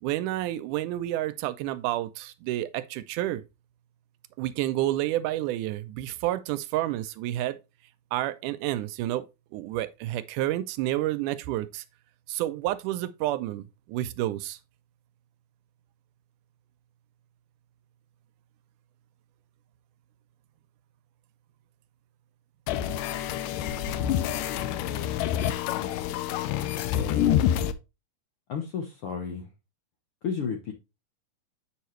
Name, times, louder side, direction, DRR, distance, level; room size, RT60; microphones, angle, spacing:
voice 1, 0.0-3.4 4.4-7.6 8.1-9.3 9.5-11.8 12.3-14.6, right 14 dB, 80° right, 2.0 m, -29 dB
sound 1, 22.7-27.7, left 10 dB, 85° left, 2.2 m, -27 dB
voice 2, 26.9-27.4 28.5-29.5 30.2-30.7, left 6 dB, 70° left, 1.3 m, -33 dB
8.3 x 5.6 x 3.1 m
omnidirectional pair, 3.7 m